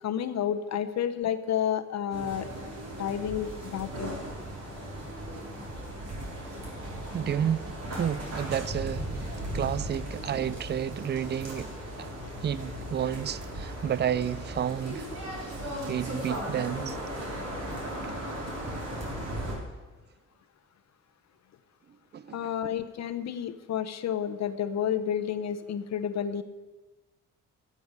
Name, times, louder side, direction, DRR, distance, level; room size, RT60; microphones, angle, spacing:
voice 1, 0.0-2.5 3.0-4.1 22.3-26.4, left 9 dB, 60° left, 1.0 m, -30 dB
sound 1, 2.1-19.6, right 1 dB, 55° right, 5.2 m, -37 dB
voice 2, 7.1-12.1 12.4-15.1 15.9-17.0 17.6-18.1 22.1-22.5, right 9 dB, 35° right, 0.5 m, -31 dB
13.0 x 7.2 x 9.7 m
cardioid pair, 90°, 30 cm